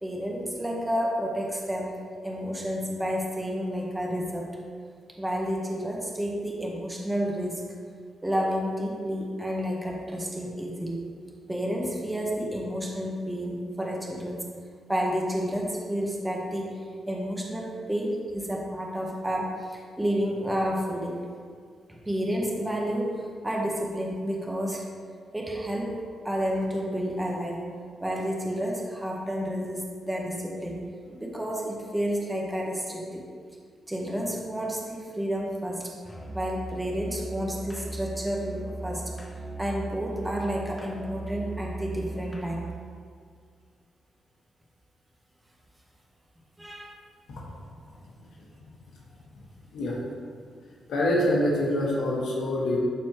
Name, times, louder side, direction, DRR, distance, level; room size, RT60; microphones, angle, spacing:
voice 1, 0.0-2.0 2.2-4.6 5.2-7.6 8.2-11.0 11.5-14.4 14.9-16.8 17.1-21.2 21.9-24.8 25.3-27.6 28.0-33.2 33.9-35.9 36.3-39.1 39.6-42.6 46.6-47.0, equal, 10° right, -2 dB, 1.3 m, -30 dB
Musical instrument, 36.0-42.8, right 2 dB, 20° left, 1.2 m, -38 dB
voice 2, 50.9-52.8, left 1 dB, 85° left, -6 dB, 1.6 m, -25 dB
12.0 x 4.3 x 3.1 m, 2.1 s
cardioid pair, 90°, 0 cm